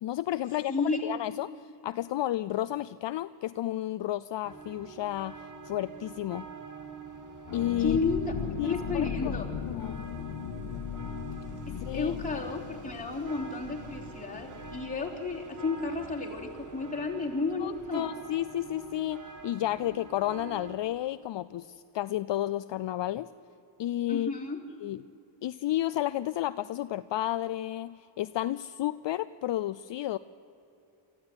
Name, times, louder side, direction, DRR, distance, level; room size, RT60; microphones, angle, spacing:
voice 1, 0.0-6.5 7.5-8.0 8.6-9.3 9.7-10.1 11.9-12.2 17.6-23.3 23.8-24.3 24.8-25.0 25.4-30.2, left 13 dB, 60° left, 14 dB, 0.5 m, -32 dB
voice 2, 0.7-1.0 7.8-8.4 8.6-9.6 11.7-18.1 24.1-24.6, left 3 dB, 15° left, -3 dB, 3.6 m, -32 dB
sound 1, 4.4-20.8, right 5 dB, 40° right, 1.8 m, -46 dB
sound 2, 7.5-16.9 17.1-17.2 17.6-17.9, left 8 dB, 80° left, 1.1 m, -39 dB
24.5 x 14.0 x 9.8 m, 2.8 s
wide cardioid pair, 125°, 49 cm